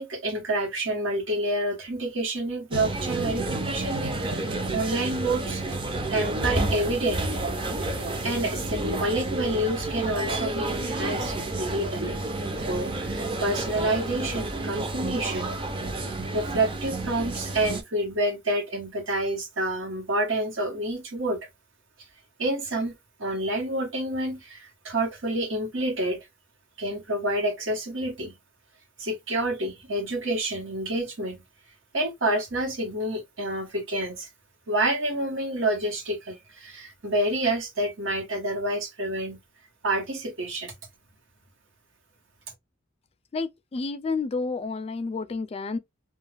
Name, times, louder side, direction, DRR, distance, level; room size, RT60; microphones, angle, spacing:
voice 1, 0.0-5.6 6.1-7.2 7.8-12.2 12.6-15.5 16.0-21.4 22.4-22.9 23.2-26.2 26.8-28.3 29.0-31.4 31.9-34.3 34.7-39.4 39.8-40.7, right 1 dB, 80° right, 1.1 m, -28 dB
sound 1, 2.7-17.8, right 2 dB, 25° right, 0.5 m, -30 dB
voice 2, 43.3-45.8, left 4 dB, 30° left, 0.3 m, -30 dB
2.4 x 2.3 x 3.2 m
head